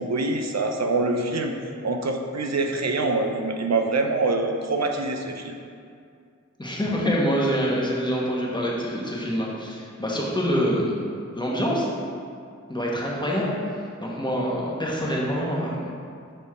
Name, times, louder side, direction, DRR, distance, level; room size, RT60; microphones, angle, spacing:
voice 1, 0.0-1.5 1.8-5.5, right 3 dB, 65° right, 4 dB, 0.7 m, -25 dB
voice 2, 6.6-10.9 11.3-11.9 12.7-13.5 14.0-15.9, equal, 15° left, -4 dB, 1.4 m, -25 dB
7.6 x 4.1 x 3.7 m, 2.3 s
cardioid pair, 45°, 29 cm